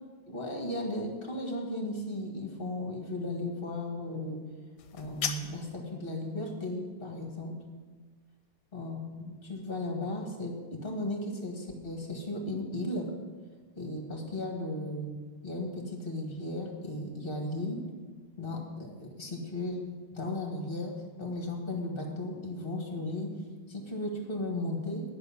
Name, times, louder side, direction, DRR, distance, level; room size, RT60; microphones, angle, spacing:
voice 1, 0.3-4.4 4.9-7.6 8.7-13.1 13.8-15.1 15.4-17.8 18.4-20.9 21.2-23.3 23.7-25.0, left 1 dB, 30° left, 1 dB, 1.7 m, -35 dB
sound 1, 4.8-5.8, left 7 dB, 65° left, 1.3 m, -36 dB
10.5 x 6.1 x 7.3 m, 1.4 s
omnidirectional pair, 2.1 m